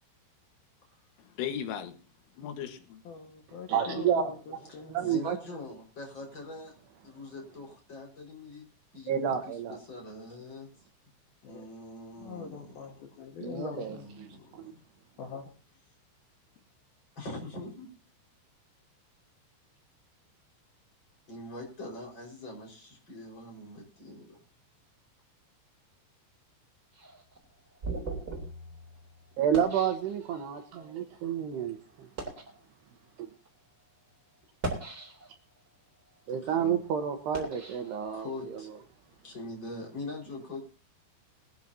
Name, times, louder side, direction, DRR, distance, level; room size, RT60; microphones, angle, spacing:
voice 1, 1.4-2.0 2.4-3.0, left 9 dB, 85° left, 4.2 m, -36 dB
voice 2, 3.0-5.3 11.4-11.7 12.2-14.1 15.2-15.5, left 6 dB, 60° left, 3.1 m, -43 dB
voice 3, 3.7-4.6 4.8-5.4 9.1-9.8 13.4-14.0 14.5-14.6 29.4-31.7 36.3-38.6, right 8 dB, 70° right, 2.8 m, -30 dB
voice 4, 4.7-6.7 7.0-8.6 8.9-10.7 11.4-13.0 13.9-14.8 17.2-17.9 21.3-24.4 36.4-36.8 38.1-38.7 39.2-40.6, left 2 dB, 25° left, 5.4 m, -43 dB
sound 1, 26.9-30.7 31.3-31.5 32.0-32.6 33.3-33.5 34.4-35.5 36.0-38.6, right 2 dB, 20° right, 3.3 m, -40 dB
21.5 x 12.0 x 2.8 m
omnidirectional pair, 5.6 m